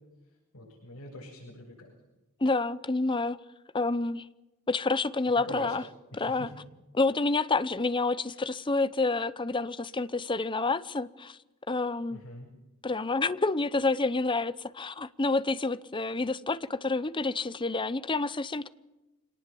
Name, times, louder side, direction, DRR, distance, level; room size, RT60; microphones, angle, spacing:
voice 1, 0.5-1.9 5.3-5.8 6.1-6.5 8.4-8.5 12.1-12.5, left 1 dB, 70° left, 7.5 m, -43 dB
voice 2, 2.4-3.4 3.7-4.2 4.7-5.8 6.1-6.5 6.9-11.4 11.7-12.2 12.8-18.7, left 3 dB, 20° left, 0.8 m, -28 dB
26.5 x 19.0 x 7.0 m
head